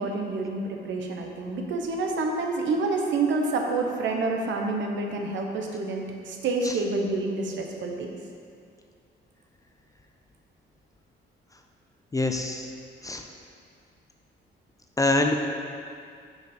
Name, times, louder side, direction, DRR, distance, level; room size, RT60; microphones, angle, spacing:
voice 1, 0.0-8.2, right 3 dB, 70° right, 2 dB, 0.7 m, -28 dB
voice 2, 12.1-12.7 13.0-13.2 15.0-15.4, left 2 dB, 15° left, 3 dB, 0.4 m, -24 dB
4.9 x 4.0 x 4.9 m, 2.3 s
cardioid pair, 90°, 20 cm